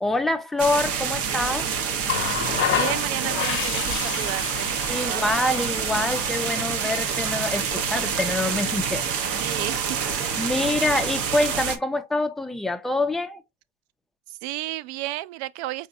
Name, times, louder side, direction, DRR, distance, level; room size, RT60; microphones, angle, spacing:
voice 1, 0.0-1.7 4.9-9.4 10.4-13.4, left 2 dB, ahead, 0.4 m, -26 dB
sound 1, 0.6-11.8, right 7 dB, 40° right, 0.9 m, -27 dB
Water tap faucet, 2.0-7.6 8.8-9.0, left 10 dB, 35° left, 1.0 m, -31 dB
voice 2, 2.7-5.4 9.4-9.9 14.3-15.9, right 16 dB, 60° right, 0.4 m, -33 dB
4.7 x 3.4 x 2.5 m
hypercardioid pair, 100°, 38 cm